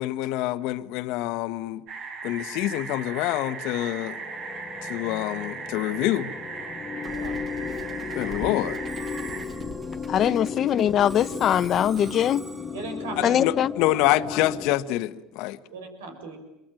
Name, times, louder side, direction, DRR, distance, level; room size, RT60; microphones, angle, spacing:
voice 1, 0.0-1.8 2.2-4.2 4.8-6.3 8.1-8.8 13.4-15.6, left 15 dB, 70° left, 1.3 m, -26 dB
sound 1, 1.9-9.5, right 5 dB, 55° right, 6.0 m, -37 dB
sound 2, 3.5-14.8, left 6 dB, 30° left, 1.3 m, -35 dB
Musical instrument, 7.0-14.4, right 3 dB, 30° right, 2.9 m, -43 dB
voice 2, 7.0-7.3 10.0-10.4 12.7-13.4 15.7-16.4, right 3 dB, 90° right, 6.0 m, -37 dB
voice 3, 10.1-12.4 13.2-13.7, left 10 dB, 50° left, 1.1 m, -22 dB
27.0 x 24.0 x 9.0 m
supercardioid pair, 90°, 0 cm